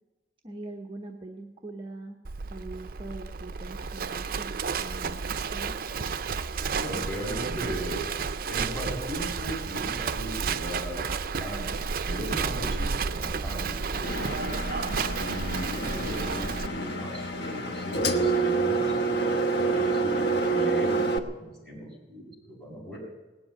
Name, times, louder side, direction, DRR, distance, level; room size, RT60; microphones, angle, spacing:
voice 1, 0.4-2.2 2.5-5.8, right 2 dB, 30° right, 1 dB, 1.0 m, -42 dB
Livestock farm animals working animals, 2.2-16.7, right 5 dB, 55° right, 0.6 m, -31 dB
voice 2, 6.8-8.0 8.5-11.0 11.4-14.5 15.2-23.0, equal, 5° left, -5 dB, 7.2 m, -37 dB
Engine, 14.0-21.2, right 3 dB, 70° left, 1.1 m, -28 dB
18.5 x 7.9 x 9.5 m, 1.2 s
head